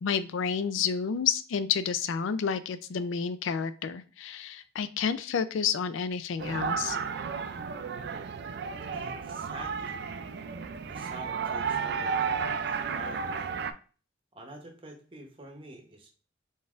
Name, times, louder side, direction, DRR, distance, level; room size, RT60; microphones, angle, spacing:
voice 1, 0.0-7.0, left 6 dB, 75° left, 12 dB, 0.4 m, -30 dB
sound 1, 6.4-13.7, right 6 dB, 55° right, 0.3 m, -33 dB
voice 2, 8.9-10.0 10.9-13.5 14.3-16.1, right 1 dB, 25° right, 2 dB, 0.8 m, -46 dB
3.9 x 3.9 x 2.4 m, 0.38 s
head